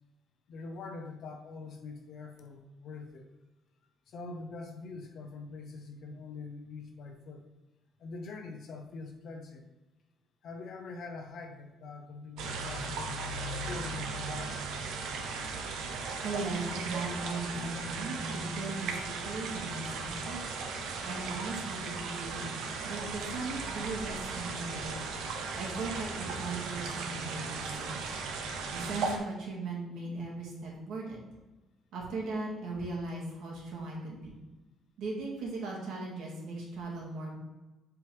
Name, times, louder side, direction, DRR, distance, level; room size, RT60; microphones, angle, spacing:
voice 1, 0.5-3.3 4.1-7.5 8.0-9.7 10.4-14.6, left 3 dB, 45° left, 4 dB, 0.9 m, -44 dB
sound 1, 12.4-29.2, right 4 dB, 85° right, 1.0 m, -37 dB
voice 2, 16.2-20.4 21.0-22.5 22.8-25.0 25.5-28.0 28.7-31.2 31.9-34.4 35.0-37.4, right 3 dB, 65° right, -3 dB, 2.3 m, -38 dB
7.8 x 4.7 x 3.5 m, 1.1 s
cardioid pair, 175°, 0 cm